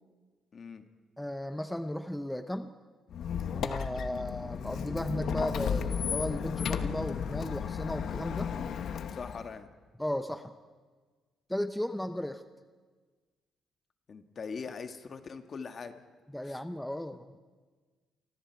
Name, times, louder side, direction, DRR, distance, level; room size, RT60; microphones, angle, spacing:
voice 1, 0.5-0.8 9.1-9.7 14.1-16.0 16.4-16.6 17.1-17.2, left 5 dB, 45° left, 7 dB, 1.6 m, -42 dB
voice 2, 1.2-2.7 3.5-8.5 10.0-10.5 11.5-12.4 16.3-17.4, left 1 dB, 5° left, 9 dB, 0.8 m, -35 dB
Squeak, 3.1-9.5, left 7 dB, 65° left, 1.1 m, -34 dB
29.0 x 25.0 x 4.6 m, 1.4 s
cardioid pair, 90°, 0 cm